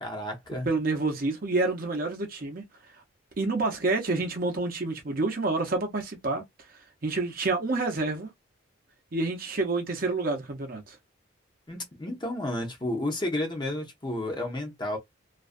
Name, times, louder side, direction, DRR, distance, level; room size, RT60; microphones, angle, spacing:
voice 1, 0.0-0.7 11.7-15.0, left 1 dB, 20° left, 0.7 m, -31 dB
voice 2, 0.6-2.6 3.4-6.4 7.0-8.3 9.1-11.0, right 3 dB, 45° right, 0.7 m, -28 dB
2.4 x 2.2 x 2.4 m
head